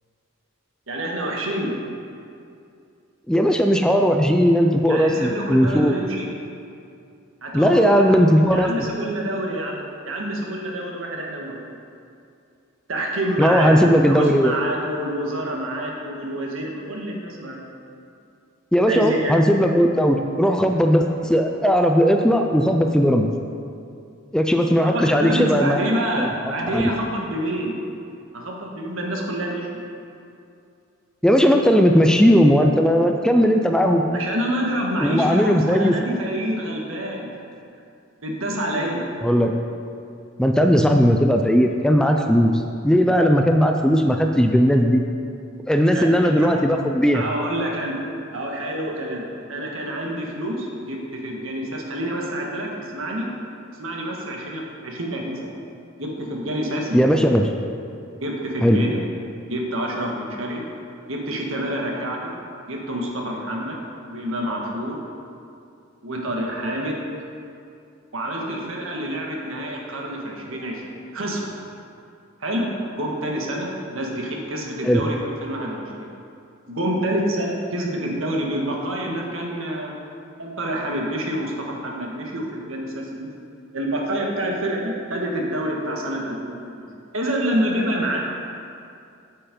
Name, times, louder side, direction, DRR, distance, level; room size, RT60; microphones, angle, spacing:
voice 1, 0.9-1.7 4.9-6.3 7.4-8.2 8.5-11.7 12.9-17.6 18.9-19.3 24.8-27.8 28.3-29.8 34.1-37.3 38.2-39.0 45.9-46.6 47.1-48.0 48.3-53.3 53.8-55.5 56.0-57.0 58.2-59.0 59.5-60.6 61.1-62.3 62.7-63.8 64.1-65.0 66.0-67.0 68.1-71.5 72.4-72.7 72.9-76.1 76.7-79.9 80.4-83.3 83.7-86.8 87.1-88.2, right 1 dB, 80° right, -1 dB, 1.6 m, -27 dB
voice 2, 3.3-5.9 7.5-8.7 13.4-14.5 18.7-23.3 24.3-25.8 26.2-26.3 26.7-26.9 31.2-34.0 35.0-36.0 39.2-39.5 40.4-45.0 45.7-47.2 56.9-57.5 58.6-58.8 74.8-75.0, equal, 5° left, 4 dB, 0.4 m, -17 dB
8.3 x 7.9 x 5.3 m, 2.5 s
head